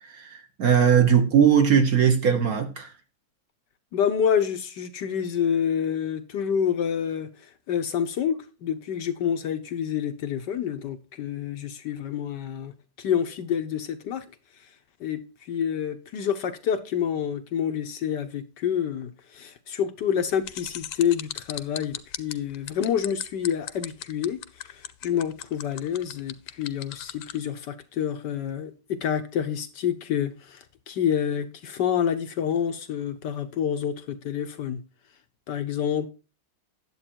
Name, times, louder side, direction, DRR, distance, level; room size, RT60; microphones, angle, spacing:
voice 1, 0.0-2.9, right 7 dB, 55° right, 1.5 m, -20 dB
voice 2, 3.9-14.3 14.6-14.7 15.0-34.8 35.5-36.1, left 8 dB, 70° left, 1.4 m, -28 dB
sound 1, 20.4-27.4, left 13 dB, 85° left, 1.5 m, -36 dB
10.0 x 7.7 x 4.5 m
omnidirectional pair, 2.1 m